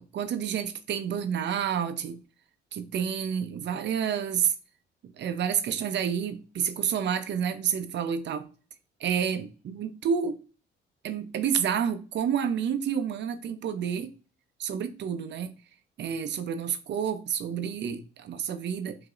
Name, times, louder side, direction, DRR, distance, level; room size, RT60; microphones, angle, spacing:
voice 1, 0.0-2.2 2.7-4.5 5.0-8.5 9.0-10.4 11.0-14.1 14.6-15.5 16.0-19.0, right 8 dB, 65° right, 0.6 m, -29 dB
4.9 x 2.7 x 2.5 m
cardioid pair, 90°, 20 cm